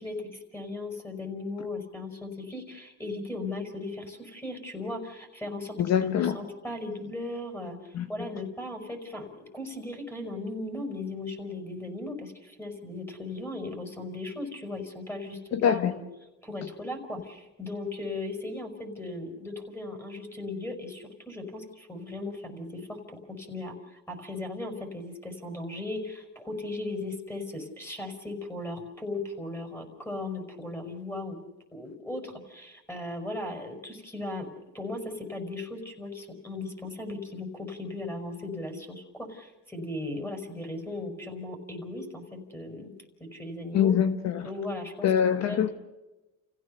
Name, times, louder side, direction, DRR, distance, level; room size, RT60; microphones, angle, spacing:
voice 1, 0.0-16.0 16.4-31.4 31.7-42.9 43.2-44.0 44.4-45.1 45.4-45.7, left 2 dB, 5° left, 5.4 m, -37 dB
voice 2, 5.8-6.3 7.9-8.1 15.5-15.9 43.7-44.5 45.0-45.7, left 9 dB, 60° left, 1.3 m, -24 dB
30.0 x 16.0 x 6.8 m
cardioid pair, 100°, 31 cm